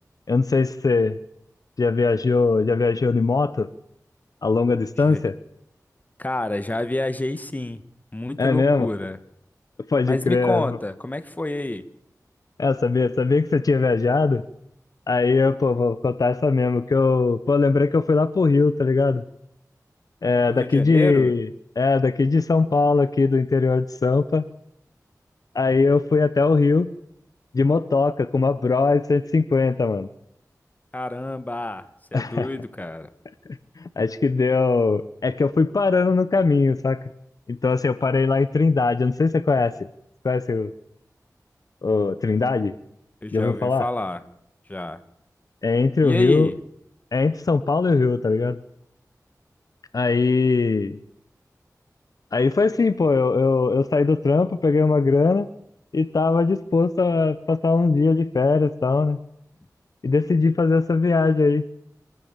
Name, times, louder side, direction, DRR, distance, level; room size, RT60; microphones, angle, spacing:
voice 1, 0.3-1.2 1.8-3.7 4.4-5.4 8.4-8.9 9.9-10.8 12.6-14.4 15.1-19.2 20.2-21.5 21.8-24.4 25.5-26.9 27.5-30.1 32.1-32.5 33.8-37.0 37.5-39.7 40.2-40.7 41.8-42.8 43.3-43.9 45.6-46.5 47.1-48.6 49.9-51.0 52.3-55.5 55.9-59.2 60.0-61.6, left 4 dB, 70° left, 14 dB, 0.8 m, -20 dB
voice 2, 6.2-7.8 8.1-9.2 10.1-11.8 20.5-21.3 30.9-31.9 32.1-33.1 43.2-44.2 44.7-45.0 46.0-46.6, left 1 dB, 25° left, 12 dB, 1.4 m, -28 dB
24.0 x 14.5 x 7.5 m, 0.78 s
wide cardioid pair, 70°, 6 cm